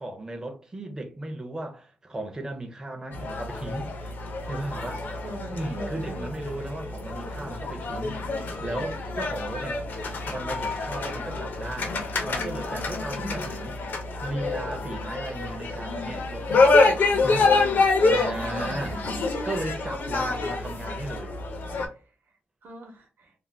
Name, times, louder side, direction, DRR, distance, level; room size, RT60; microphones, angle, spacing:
voice 1, 0.0-3.9 4.5-5.1 5.5-9.8 10.3-11.9 12.2-13.8 14.2-16.9 17.2-17.7 18.1-19.0 19.5-21.3, right 2 dB, 15° right, 0.5 m, -35 dB
sound 1, 3.1-21.9, left 3 dB, 60° left, 0.5 m, -27 dB
voice 2, 5.2-6.3 13.2-13.5 18.0-19.3 19.5-19.8 21.9-22.0 22.6-23.3, right 1 dB, 65° right, 0.8 m, -40 dB
2.4 x 2.1 x 3.2 m
wide cardioid pair, 175°, 4 cm